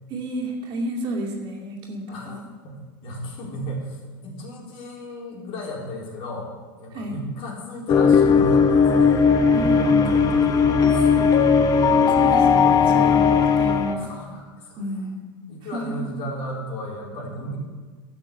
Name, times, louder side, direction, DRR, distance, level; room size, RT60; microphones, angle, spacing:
voice 1, 0.1-2.5 6.9-7.2 9.5-10.2 11.9-14.1 14.8-15.3 15.7-16.0, equal, 40° right, -1 dB, 2.4 m, -31 dB
voice 2, 2.6-6.5 6.8-9.1 9.5-11.1 14.0-14.8 15.5-17.6, equal, 50° left, -3 dB, 4.2 m, -34 dB
sound 1, 7.9-13.9, left 6 dB, 30° left, 1.0 m, -17 dB
12.0 x 7.5 x 7.9 m, 1.4 s
supercardioid pair, 125°, 12 cm